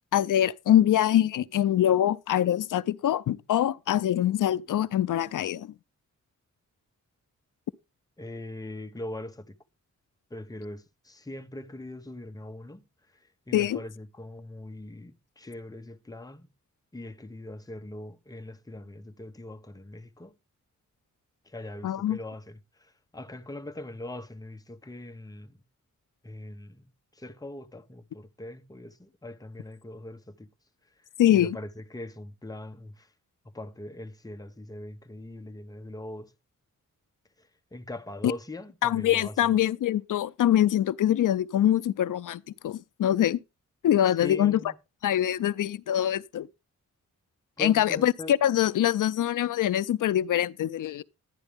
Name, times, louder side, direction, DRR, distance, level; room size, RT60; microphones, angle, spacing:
voice 1, 0.1-5.7 13.5-13.8 21.8-22.2 31.2-31.6 38.2-38.3 38.8-43.4 43.8-44.6 45.0-46.5 47.6-51.0, left 11 dB, 80° left, 0.5 m, -24 dB
voice 2, 8.2-9.5 10.3-12.8 13.1-16.5 16.9-20.3 21.4-25.6 26.2-26.9 27.1-30.5 31.3-33.1 33.4-36.3 37.4-39.5 44.2-44.8 47.6-48.4, left 1 dB, 10° left, 0.8 m, -41 dB
11.5 x 9.8 x 3.4 m
wide cardioid pair, 120°, 31 cm